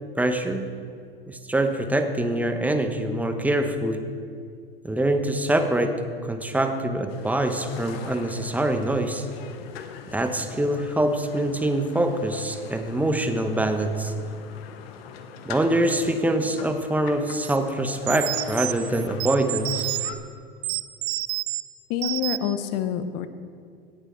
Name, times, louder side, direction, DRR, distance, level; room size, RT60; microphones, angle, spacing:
voice 1, 0.2-0.7 1.3-4.1 4.8-9.3 10.1-14.1 15.5-20.0, right 1 dB, 5° right, 7 dB, 1.0 m, -24 dB
sound 1, 7.1-20.1, left 7 dB, 70° left, 1.1 m, -42 dB
sound 2, 17.4-17.6 18.1-20.2 20.6-21.6 22.0-22.5, right 18 dB, 45° right, 0.5 m, -29 dB
voice 2, 21.9-23.3, left 9 dB, 50° left, 11 dB, 1.0 m, -27 dB
18.0 x 6.7 x 4.6 m, 2.3 s
hypercardioid pair, 90°, 31 cm